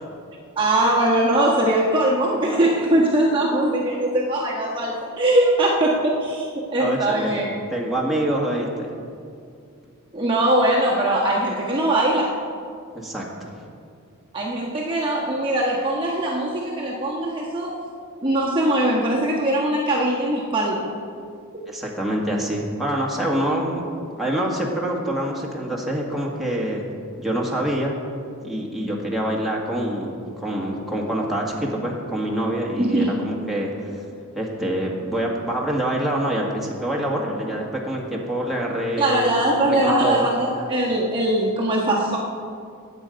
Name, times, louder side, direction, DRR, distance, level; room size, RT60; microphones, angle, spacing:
voice 1, 0.6-7.6 10.1-12.4 14.3-17.8 18.2-20.9 32.8-33.1 39.0-42.2, right 1 dB, 25° right, -4 dB, 1.4 m, -21 dB
voice 2, 6.8-7.4 7.7-8.9 13.0-13.5 21.7-23.9 24.2-26.8 27.2-28.0 28.4-34.0 34.4-40.2, right 1 dB, ahead, -3 dB, 1.8 m, -26 dB
20.5 x 8.3 x 5.2 m, 2.3 s
head